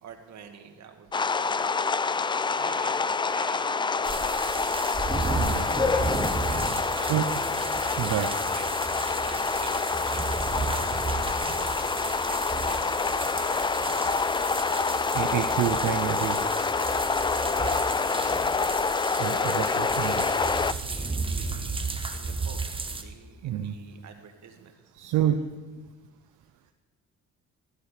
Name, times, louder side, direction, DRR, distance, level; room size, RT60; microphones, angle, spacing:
voice 1, 0.0-1.7 2.5-3.7 4.0-4.6 5.1-8.0 8.5-8.7 9.2-9.8 10.1-14.2 17.5-18.8 19.2-24.7, right 7 dB, 65° right, 5 dB, 1.8 m, -47 dB
sound 1, 1.1-20.7, left 4 dB, 15° left, 0.3 m, -27 dB
sound 2, 4.0-23.0, right 3 dB, 15° right, 1.3 m, -33 dB
voice 2, 7.0-7.4 8.0-8.3 10.3-10.4 15.1-16.9 19.2-20.3 23.4-23.8 24.9-25.4, right 11 dB, 80° right, 6 dB, 0.8 m, -28 dB
14.5 x 12.0 x 4.9 m, 1.3 s
cardioid pair, 90°, 30 cm